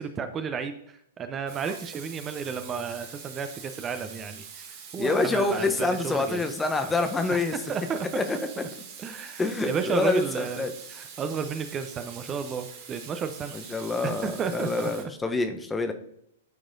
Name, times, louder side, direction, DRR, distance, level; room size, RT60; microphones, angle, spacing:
voice 1, 0.0-6.4 6.8-6.9 7.3-7.4 7.7-8.2 9.0-13.5 14.0-14.9, right 6 dB, 25° right, 9 dB, 0.6 m, -32 dB
Water tap faucet / Sink (filling or washing), 1.5-15.0, right 6 dB, 45° right, 1.4 m, -44 dB
voice 2, 5.0-7.6 8.1-8.4 9.4-10.7 13.5-15.9, left 3 dB, 10° left, 7 dB, 0.8 m, -26 dB
12.5 x 4.7 x 2.6 m, 0.74 s
hypercardioid pair, 110°, 0 cm